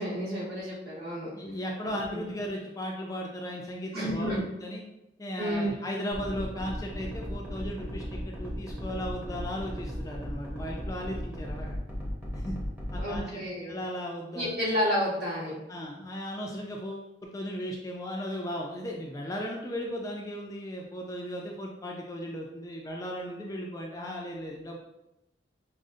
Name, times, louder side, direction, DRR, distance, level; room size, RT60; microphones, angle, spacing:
voice 1, 0.0-1.3 1.8-2.3 3.9-4.4 5.4-5.7 13.0-13.7 14.3-15.5, equal, 60° right, -7 dB, 1.5 m, -31 dB
voice 2, 1.4-4.8 5.2-11.8 12.3-12.6 12.9-14.5 15.7-24.8, equal, 20° left, 0 dB, 0.3 m, -36 dB
sound 1, 6.1-13.2, equal, 10° right, 0.7 m, -36 dB
4.8 x 2.0 x 2.6 m, 0.91 s
head